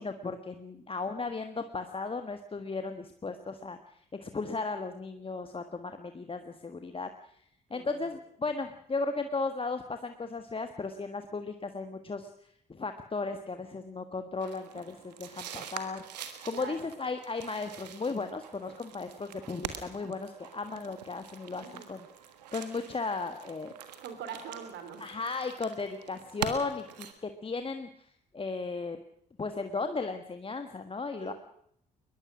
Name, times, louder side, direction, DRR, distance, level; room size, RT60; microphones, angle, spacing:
voice 1, 0.0-3.8 4.2-7.1 7.7-12.3 12.7-16.0 16.4-22.1 22.5-23.7 25.0-28.1 28.3-29.0 29.4-31.3, left 3 dB, 25° left, 7 dB, 1.5 m, -35 dB
voice 2, 7.7-8.1 16.5-16.9 21.6-21.9 24.0-25.1 31.2-31.3, right 7 dB, 60° right, 8 dB, 3.5 m, -43 dB
sound 1, 14.4-27.1, right 9 dB, 80° right, 1.6 m, -44 dB
21.5 x 21.5 x 6.2 m, 0.69 s
figure-of-eight pair, 45°, 21 cm